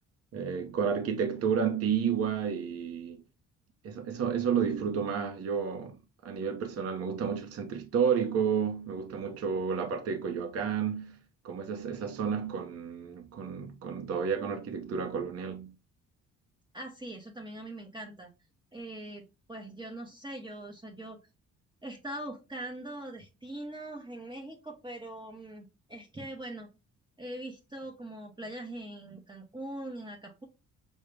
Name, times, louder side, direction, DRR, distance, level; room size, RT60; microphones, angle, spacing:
voice 1, 0.3-3.2 3.8-11.2 11.4-15.7, right 7 dB, 50° right, 0.6 m, -31 dB
voice 2, 16.7-18.3 18.7-21.2 21.8-26.7 27.2-30.5, right 1 dB, 15° right, 0.8 m, -42 dB
4.7 x 2.1 x 3.3 m
cardioid pair, 90°, 30 cm